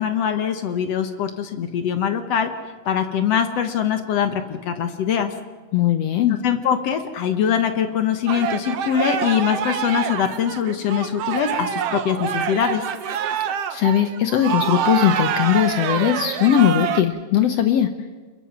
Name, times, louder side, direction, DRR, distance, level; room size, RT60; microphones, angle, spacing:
voice 1, 0.0-2.5 2.9-5.3 6.4-12.8, left 8 dB, 60° left, 8 dB, 1.8 m, -22 dB
voice 2, 5.7-6.4 13.7-17.9, left 10 dB, 80° left, 8 dB, 1.4 m, -19 dB
sound 1, 8.3-17.0, right 8 dB, 70° right, 1.5 m, -26 dB
28.0 x 22.0 x 6.0 m, 1.4 s
omnidirectional pair, 4.2 m